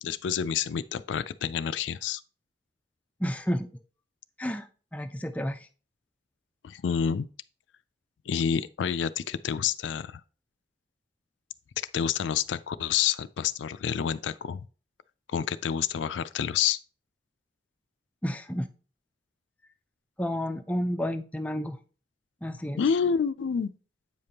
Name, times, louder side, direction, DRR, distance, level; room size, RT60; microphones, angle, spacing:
voice 1, 0.0-2.2 6.6-7.3 8.3-10.2 11.9-14.6 15.3-16.8 22.8-23.7, left 7 dB, 80° left, 0.4 m, -28 dB
voice 2, 3.2-3.7 4.4-5.7 18.2-18.7 20.2-21.8 22.4-22.8, equal, 10° left, 0.4 m, -31 dB
8.2 x 5.1 x 2.9 m
head